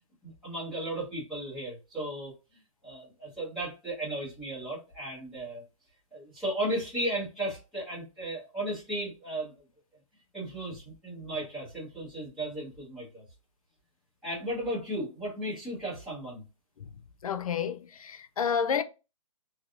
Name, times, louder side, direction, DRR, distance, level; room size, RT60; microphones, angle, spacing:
voice 1, 0.2-2.3 2.8-5.6 6.1-9.5 10.3-13.2 14.2-16.4, right 1 dB, ahead, 1.1 m, -35 dB
voice 2, 17.2-18.8, left 7 dB, 85° left, 0.5 m, -30 dB
3.3 x 2.3 x 2.4 m
hypercardioid pair, 170°, 18 cm